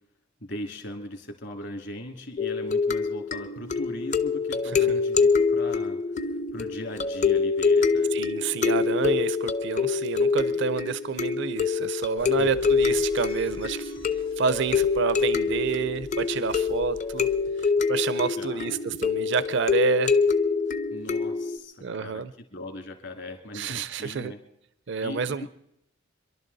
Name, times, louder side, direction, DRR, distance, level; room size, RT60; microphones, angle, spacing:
voice 1, 0.4-6.3 6.5-8.1 12.2-12.5 18.4-18.8 20.9-22.2 22.5-24.4 25.0-25.5, left 1 dB, 60° left, 4 dB, 2.4 m, -39 dB
sound 1, 2.4-21.6, left 5 dB, 35° left, 0.6 m, -25 dB
voice 2, 4.6-5.0 8.1-13.9 14.4-17.3 17.6-20.2 21.8-22.3 23.5-24.3 24.9-25.5, right 5 dB, 60° right, 15 dB, 0.5 m, -29 dB
sound 2, 12.2-17.5, left 1 dB, 85° left, 2.6 m, -48 dB
26.5 x 11.5 x 4.0 m, 0.79 s
head